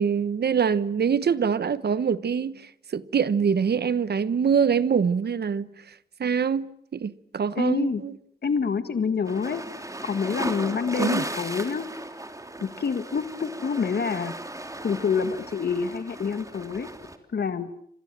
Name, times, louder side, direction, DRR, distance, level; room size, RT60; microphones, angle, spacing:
voice 1, 0.0-2.5 2.9-5.7 6.2-6.7 6.9-8.1 11.0-11.2, right 6 dB, 85° right, 1.1 m, -24 dB
voice 2, 7.6-8.0 8.4-9.6 10.0-11.9 12.6-14.3 14.8-16.9 17.3-17.7, left 5 dB, 85° left, 1.8 m, -27 dB
sound 1, 9.3-17.2, right 1 dB, 20° right, 3.3 m, -36 dB
29.0 x 26.5 x 7.6 m
wide cardioid pair, 110°, 16 cm